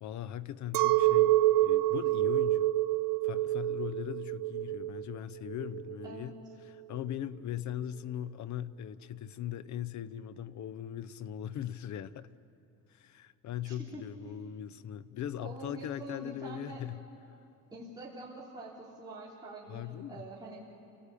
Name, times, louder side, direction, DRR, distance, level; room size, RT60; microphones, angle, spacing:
voice 1, 0.0-2.7 3.2-6.3 6.6-12.3 12.9-17.0 19.7-20.2, left 10 dB, 55° left, 0.8 m, -40 dB
Chink clink, 0.7-6.2, right 16 dB, 75° right, 0.5 m, -27 dB
voice 2, 6.0-6.4 13.6-14.0 15.4-16.8 17.7-20.6, right 2 dB, 10° right, 3.5 m, -45 dB
29.0 x 18.5 x 8.5 m
cardioid pair, 135°, 34 cm